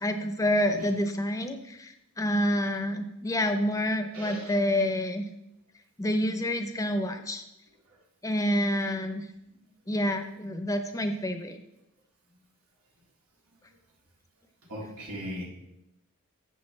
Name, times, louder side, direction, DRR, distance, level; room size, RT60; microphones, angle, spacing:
voice 1, 0.0-5.3 6.0-7.4 8.2-9.3 9.9-11.6, left 1 dB, 15° left, 7 dB, 0.7 m, -28 dB
voice 2, 4.1-4.6 9.5-9.7 14.7-15.5, equal, 85° right, -2 dB, 2.2 m, -38 dB
12.5 x 7.9 x 3.3 m, 0.88 s
head